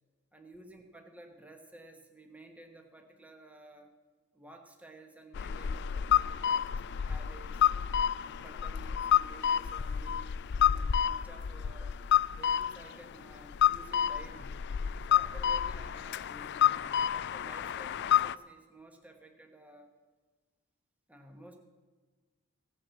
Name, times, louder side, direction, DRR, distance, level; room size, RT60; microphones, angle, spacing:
voice 1, 0.3-3.9 4.3-7.7 8.2-12.0 12.4-14.6 15.1-19.9 21.1-21.6, right 1 dB, 5° right, 3 dB, 1.3 m, -53 dB
sound 1, 5.3-18.3, left 9 dB, 55° left, 0.4 m, -29 dB
16.5 x 8.8 x 7.1 m, 1.4 s
head